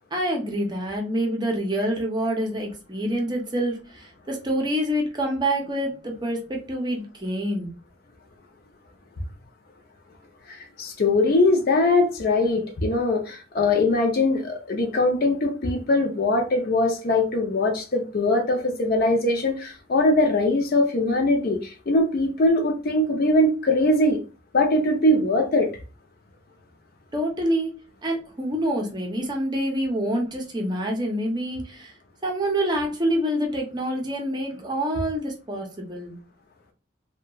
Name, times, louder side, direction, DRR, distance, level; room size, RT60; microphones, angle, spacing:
voice 1, 0.1-7.7 27.1-27.7 28.0-31.9 32.2-36.2, right 1 dB, 20° right, 0.6 m, -26 dB
voice 2, 10.5-24.2 24.5-25.7, left 2 dB, 50° left, 0.5 m, -21 dB
2.8 x 2.2 x 2.3 m
head